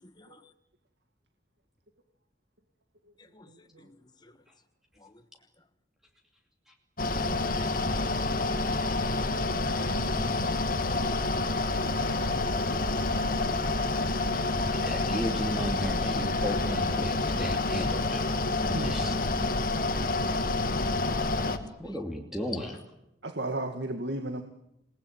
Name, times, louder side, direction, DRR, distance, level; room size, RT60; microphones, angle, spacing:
voice 1, 3.5-3.9 18.7-19.0 23.2-24.4, right 2 dB, 80° right, 2.2 m, -35 dB
Mechanical fan, 7.0-21.6, left 2 dB, 50° left, 2.3 m, -28 dB
voice 2, 7.6-8.8 12.0-13.7 21.2-21.3 21.9-22.0, left 1 dB, 25° left, 1.5 m, -52 dB
voice 3, 14.7-18.3 18.7-19.2 21.8-22.8, equal, 5° right, 2.7 m, -35 dB
28.5 x 19.5 x 9.0 m
head